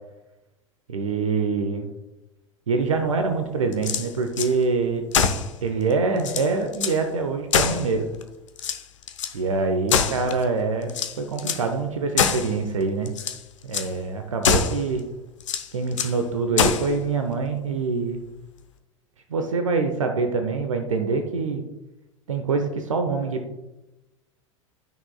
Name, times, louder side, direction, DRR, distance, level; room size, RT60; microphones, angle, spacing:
voice 1, 0.9-1.9 2.7-5.0 5.6-8.1 9.3-13.1 13.6-15.0 15.7-18.2 19.3-21.6 22.3-23.4, right 4 dB, 70° right, 6 dB, 0.8 m, -25 dB
sound 1, 3.7-4.5 5.1-5.5 5.9-6.0 6.2-7.0 7.5-8.2 8.6-9.4 9.9-10.5 10.9-11.7 12.2-12.5 13.1-13.4 13.7-13.9 14.4-14.8 15.4-16.2 16.6-16.9, left 6 dB, 65° left, 0.7 m, -24 dB
12.5 x 6.1 x 2.3 m, 1.0 s
figure-of-eight pair, 80°, 17 cm